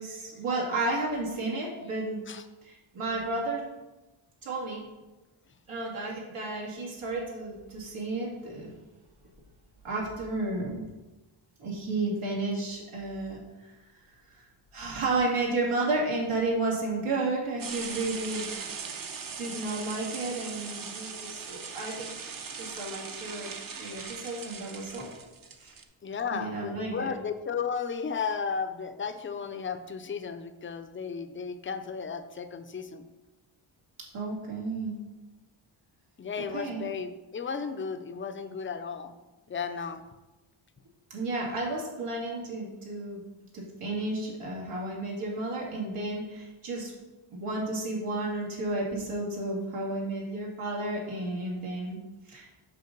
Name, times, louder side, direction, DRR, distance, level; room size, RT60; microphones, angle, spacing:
voice 1, 0.0-2.2 2.6-3.6 4.4-4.8 5.7-8.7 9.8-10.8 11.6-13.7 14.7-18.6 19.4-22.3 22.6-25.1 25.6-25.7 26.3-27.1 34.1-35.0 36.5-36.8 41.1-43.2 43.5-46.9 47.3-52.0 52.3-52.5, right 2 dB, 90° right, -3 dB, 2.5 m, -32 dB
sound 1, 17.6-25.8, right 5 dB, 45° right, 0.7 m, -40 dB
voice 2, 26.0-33.1 36.2-39.1 39.5-40.0, left 6 dB, 25° left, 8 dB, 0.5 m, -34 dB
6.7 x 5.1 x 6.6 m, 1.1 s
wide cardioid pair, 160°, 50 cm